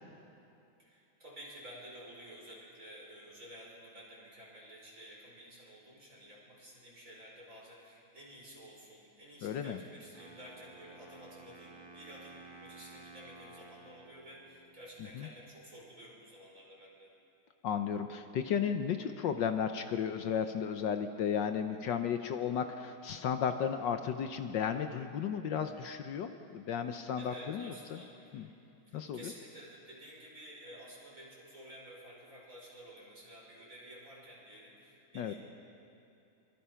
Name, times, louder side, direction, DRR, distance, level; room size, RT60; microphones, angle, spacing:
voice 1, 0.8-17.1 27.2-35.4, equal, 40° right, -4 dB, 5.8 m, -52 dB
voice 2, 9.4-9.8 15.2-15.3 17.6-28.0 28.3-28.5 28.9-29.3 35.1-35.3, left 7 dB, 70° left, 7 dB, 1.4 m, -34 dB
Wind instrument woodwind instrument, 10.1-15.1, right 3 dB, 15° right, 1.5 m, -54 dB
24.5 x 23.5 x 5.8 m, 2.7 s
omnidirectional pair, 2.1 m